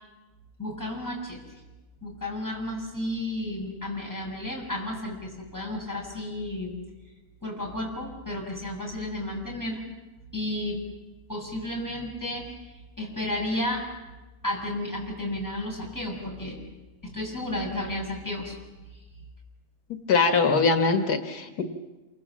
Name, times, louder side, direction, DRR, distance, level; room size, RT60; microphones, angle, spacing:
voice 1, 0.6-1.4 2.0-6.8 7.4-9.8 10.3-10.8 11.3-13.8 14.4-16.6 17.0-18.6, left 1 dB, 10° left, -1 dB, 6.6 m, -32 dB
voice 2, 20.1-21.6, left 4 dB, 90° left, 6 dB, 2.1 m, -22 dB
27.5 x 25.0 x 7.5 m, 1.2 s
omnidirectional pair, 1.6 m